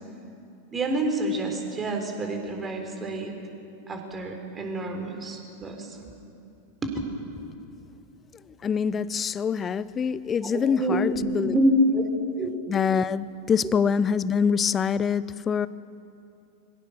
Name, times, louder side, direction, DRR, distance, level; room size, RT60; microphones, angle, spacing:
voice 1, 0.7-3.3 3.9-6.1 6.8-6.9 10.4-12.0 12.4-12.5, right 1 dB, 20° right, 3.8 m, -27 dB
voice 2, 8.6-11.5 12.7-15.7, left 6 dB, 25° left, 0.6 m, -25 dB
24.5 x 16.5 x 6.5 m
figure-of-eight pair, 90°, 0 cm